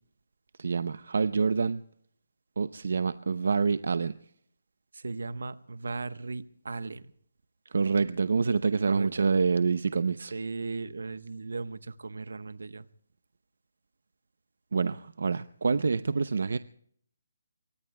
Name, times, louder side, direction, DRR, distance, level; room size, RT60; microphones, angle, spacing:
voice 1, 0.6-1.8 2.6-4.1 7.7-10.3 14.7-16.6, right 5 dB, 55° right, 0.5 m, -27 dB
voice 2, 5.0-7.0 8.9-9.3 10.3-12.8, right 3 dB, 70° right, 1.0 m, -37 dB
28.0 x 23.5 x 2.2 m
hypercardioid pair, 180°, 0 cm